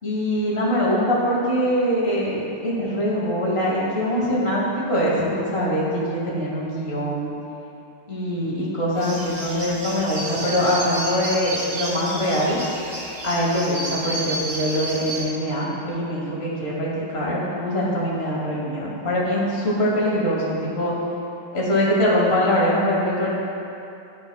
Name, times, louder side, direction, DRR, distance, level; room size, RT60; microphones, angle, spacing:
voice 1, 0.0-7.3 8.1-12.6 13.2-20.9 21.5-23.3, equal, 35° left, -6 dB, 1.1 m, -23 dB
sound 1, 9.0-15.2, right 1 dB, 55° right, 1.6 m, -31 dB
11.5 x 4.8 x 2.2 m, 2.7 s
omnidirectional pair, 2.4 m